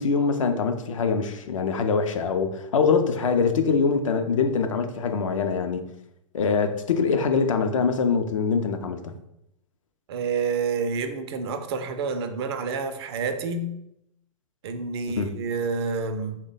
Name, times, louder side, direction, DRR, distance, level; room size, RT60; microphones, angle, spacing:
voice 1, 0.0-5.8 6.3-9.1 15.2-15.3, left 5 dB, 65° left, 0.4 m, -23 dB
voice 2, 10.1-13.8 14.6-16.4, right 4 dB, 50° right, 0.4 m, -28 dB
3.1 x 2.1 x 3.8 m
figure-of-eight pair, 100°, 18 cm